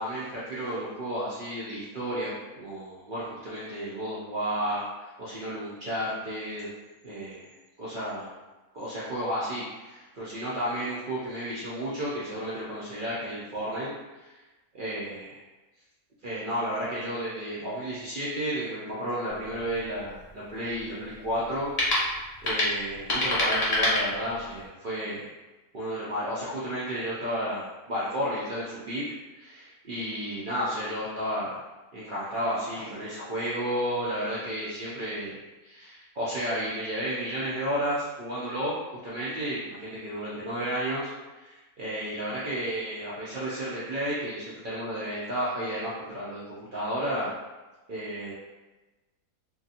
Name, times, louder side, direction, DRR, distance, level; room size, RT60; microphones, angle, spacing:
voice 1, 0.0-6.7 7.0-7.5 7.8-8.4 8.7-14.4 14.7-15.4 16.2-25.3 25.7-29.0 29.3-31.6 31.9-38.8 39.0-47.3 47.9-48.3, equal, 75° right, -8 dB, 0.4 m, -32 dB
sound 1, 19.3-24.7, left 1 dB, 55° left, 0.4 m, -29 dB
2.7 x 2.5 x 2.7 m, 1.1 s
omnidirectional pair, 1.7 m